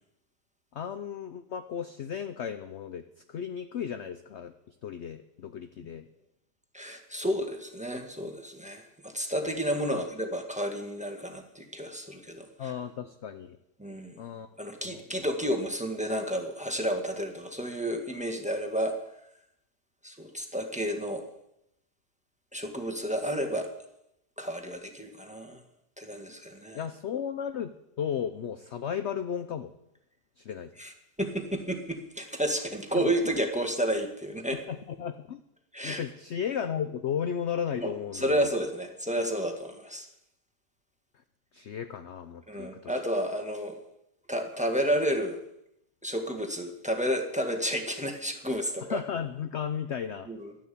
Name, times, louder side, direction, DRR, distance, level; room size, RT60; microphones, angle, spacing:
voice 1, 0.7-4.5 4.8-6.1 9.9-10.0 12.6-13.6 14.2-14.5 14.8-15.0 26.7-29.7 30.4-30.7 32.9-33.1 34.5-35.4 35.8-38.5 41.5-42.9 48.9-50.3, left 8 dB, 55° left, 10 dB, 0.8 m, -34 dB
voice 2, 6.7-12.7 13.8-14.2 14.6-19.0 20.0-21.2 22.5-23.7 24.4-25.6 26.0-26.9 30.8-30.9 31.2-34.6 35.7-36.0 37.8-40.1 42.5-43.8 44.3-45.4 46.0-49.0 50.3-50.5, equal, 5° right, 4 dB, 1.6 m, -31 dB
12.5 x 11.0 x 8.5 m, 0.83 s
omnidirectional pair, 1.7 m